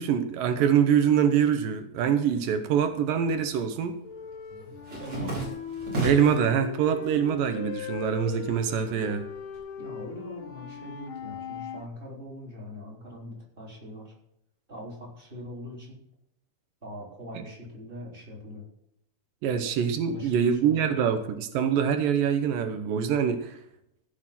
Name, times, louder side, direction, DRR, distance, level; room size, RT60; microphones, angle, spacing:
voice 1, 0.0-4.0 6.0-9.3 19.4-23.6, right 8 dB, 85° right, 8 dB, 2.6 m, -24 dB
sound 1, 2.9-3.4 3.7-6.5 6.9-7.6 7.9-9.6, right 2 dB, 40° right, 5.6 m, -35 dB
sound 2, 4.0-11.9, left 8 dB, 80° left, 1.1 m, -39 dB
voice 2, 5.0-5.4 9.8-14.1 14.7-16.0 16.8-18.6 20.0-21.0, left 1 dB, 15° right, -4 dB, 4.2 m, -42 dB
15.0 x 6.6 x 5.9 m, 0.76 s
omnidirectional pair, 3.8 m